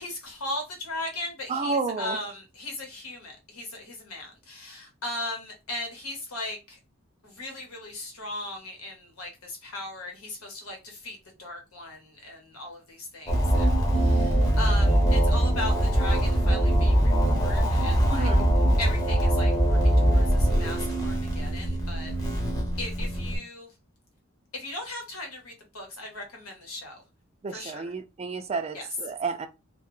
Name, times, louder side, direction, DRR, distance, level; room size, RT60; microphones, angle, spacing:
voice 1, 0.0-6.8 7.2-18.3 18.8-22.4 22.8-23.7 24.5-27.0 27.5-27.8 28.7-28.9, left 2 dB, 90° left, 1.1 m, -38 dB
voice 2, 1.5-2.2 18.1-18.6 27.4-29.5, right 4 dB, 30° right, 0.3 m, -31 dB
sound 1, 13.3-23.4, right 1 dB, 15° left, 0.7 m, -22 dB
2.2 x 2.2 x 3.1 m
head